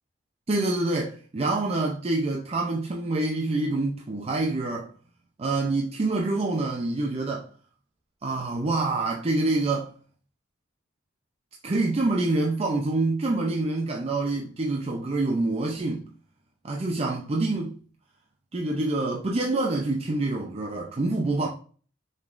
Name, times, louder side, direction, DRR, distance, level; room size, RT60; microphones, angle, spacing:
voice 1, 0.5-4.9 5.4-7.5 8.2-9.9 11.6-16.1 16.6-17.8 18.5-21.5, right 2 dB, 30° right, 0.5 m, -26 dB
5.1 x 3.5 x 2.5 m
head